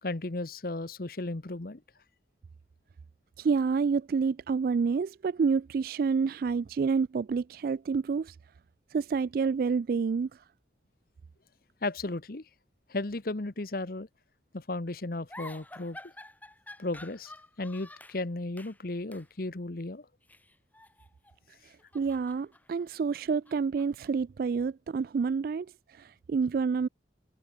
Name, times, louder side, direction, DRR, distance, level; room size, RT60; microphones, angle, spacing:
voice 1, 0.0-1.8 11.8-12.5 12.9-14.1 14.5-16.0 16.8-17.3 17.6-20.1, left 2 dB, 55° left, 1.1 m, -35 dB
voice 2, 3.4-8.4 8.9-10.4 21.6-26.9, right 5 dB, 55° right, 0.3 m, -28 dB
sound 1, 15.3-18.2 18.6-18.8 19.1-19.3 20.2-21.4 21.7-24.1, left 2 dB, 10° left, 5.4 m, -50 dB
head